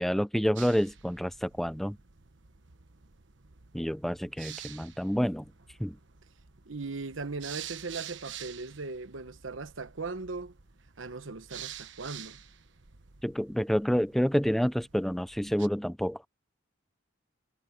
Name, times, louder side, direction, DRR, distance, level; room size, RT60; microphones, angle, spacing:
voice 1, 0.0-2.0 3.7-5.4 5.8-6.0 13.2-16.2, equal, ahead, 0.4 m, -28 dB
sound 1, 0.6-15.7, right 10 dB, 70° right, 1.2 m, -48 dB
voice 2, 6.6-10.5 11.0-12.4, right 3 dB, 85° right, 1.0 m, -38 dB
head